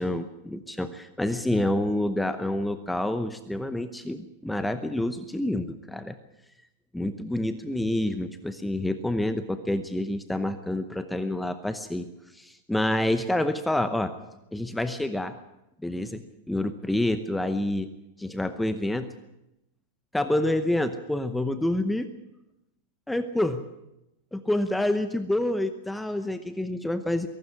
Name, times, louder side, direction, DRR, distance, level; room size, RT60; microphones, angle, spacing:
voice 1, 0.0-6.1 6.9-12.1 12.3-14.1 14.5-15.3 15.8-17.9 18.2-19.1 20.1-22.1 23.1-23.6 24.3-27.3, left 1 dB, 5° left, 10 dB, 0.8 m, -28 dB
22.0 x 12.0 x 9.6 m, 0.88 s
supercardioid pair, 165°, 0 cm